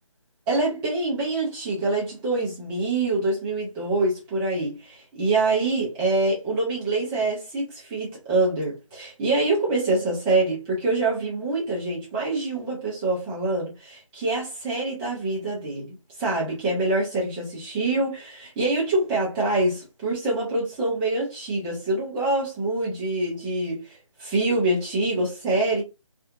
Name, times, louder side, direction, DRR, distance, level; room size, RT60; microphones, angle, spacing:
voice 1, 0.5-25.8, right 2 dB, 10° right, 0.6 m, -25 dB
2.7 x 2.5 x 2.4 m
figure-of-eight pair, 155°, 17 cm